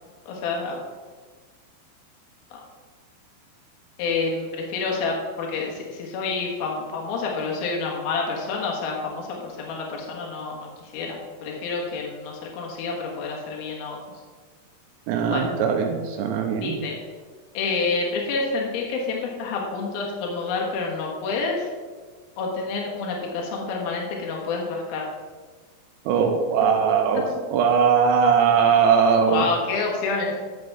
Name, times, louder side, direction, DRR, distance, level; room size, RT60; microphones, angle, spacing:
voice 1, 0.3-0.8 2.5-2.6 4.0-14.0 15.3-15.4 16.6-17.0 17.5-21.7 22.4-25.1 29.3-30.4, left 4 dB, 65° left, -1 dB, 3.0 m, -28 dB
voice 2, 15.1-16.8 26.1-27.2 27.5-29.4, right 6 dB, 85° right, 4 dB, 3.0 m, -20 dB
11.0 x 7.8 x 3.6 m, 1.5 s
omnidirectional pair, 5.3 m